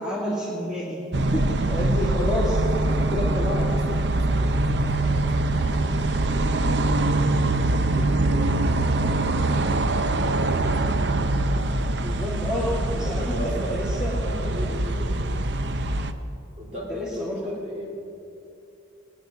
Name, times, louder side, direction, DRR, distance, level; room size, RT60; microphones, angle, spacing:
voice 1, 0.0-3.6 12.0-14.1 16.9-17.4, left 1 dB, 5° right, -9 dB, 2.2 m, -29 dB
sound 1, 1.1-16.1, right 2 dB, 60° right, 0.6 m, -23 dB
voice 2, 2.9-6.5 6.9-10.0 10.3-11.3 12.9-15.4 16.6-17.9, equal, 35° right, -3 dB, 2.8 m, -37 dB
20.5 x 9.9 x 5.6 m, 2.7 s
head